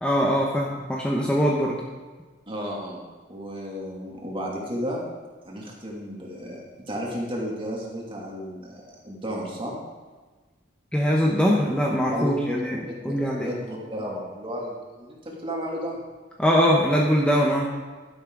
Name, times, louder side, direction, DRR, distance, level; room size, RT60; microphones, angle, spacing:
voice 1, 0.0-1.8 10.9-13.5 16.4-17.7, equal, 5° left, -2 dB, 1.0 m, -22 dB
voice 2, 2.5-3.0 3.3-5.0 5.4-9.8 12.1-16.0, equal, 30° right, -3 dB, 2.6 m, -33 dB
11.5 x 11.0 x 3.9 m, 1.4 s
head